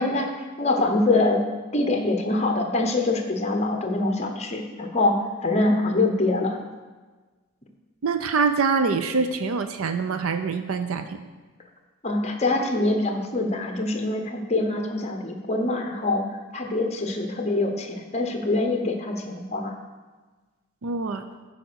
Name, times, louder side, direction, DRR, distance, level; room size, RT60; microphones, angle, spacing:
voice 1, 0.0-1.4 1.7-6.6 12.0-16.3 16.5-19.7, left 2 dB, 30° left, 4 dB, 1.0 m, -24 dB
voice 2, 8.0-11.2 20.8-21.2, right 4 dB, 90° right, 9 dB, 0.5 m, -25 dB
9.4 x 5.0 x 6.3 m, 1.3 s
head